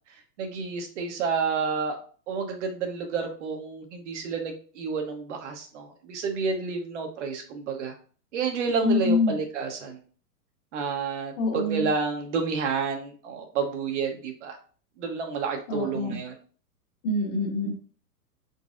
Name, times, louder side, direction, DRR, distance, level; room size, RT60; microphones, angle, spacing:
voice 1, 0.4-2.0 2.3-8.0 8.3-10.0 10.7-14.6 15.0-16.4, right 5 dB, 45° right, 4 dB, 0.9 m, -30 dB
voice 2, 8.8-9.3 11.4-11.9 15.7-16.2 17.0-17.7, left 3 dB, 35° left, 1 dB, 1.2 m, -25 dB
4.5 x 4.0 x 2.4 m, 0.41 s
hypercardioid pair, 150°, 48 cm